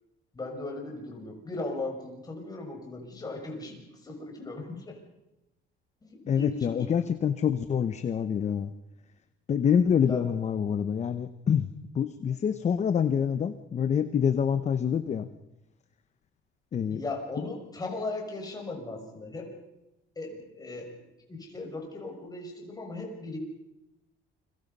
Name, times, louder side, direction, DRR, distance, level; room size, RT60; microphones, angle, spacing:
voice 1, 0.3-5.0 6.0-6.9 10.0-10.3 16.8-19.5 20.2-20.9 21.3-23.4, left 2 dB, 20° left, 1 dB, 6.0 m, -37 dB
voice 2, 6.3-8.7 9.5-11.7 11.9-15.3 16.7-17.0, left 7 dB, 35° left, 11 dB, 0.9 m, -26 dB
29.0 x 23.5 x 5.5 m, 0.93 s
cardioid pair, 150°, 21 cm